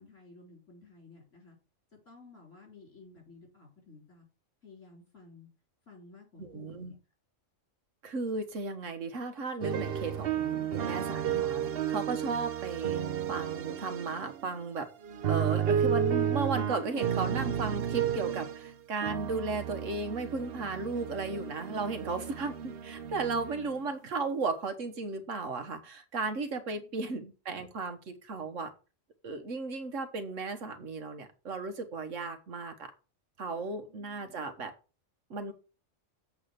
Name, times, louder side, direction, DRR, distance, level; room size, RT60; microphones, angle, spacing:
voice 1, 0.0-1.6 2.1-4.3 4.6-5.5 5.9-6.9 26.8-27.0 33.9-34.5, left 3 dB, 65° left, 4.4 m, -54 dB
voice 2, 6.4-6.9 8.0-14.9 15.3-28.7 29.2-32.9 33.4-34.7 35.3-35.5, right 3 dB, 75° right, 1.6 m, -35 dB
sound 1, 9.6-14.5 15.0-18.7 19.0-23.8, right 9 dB, 55° right, 0.8 m, -32 dB
7.5 x 4.8 x 6.6 m
omnidirectional pair, 1.3 m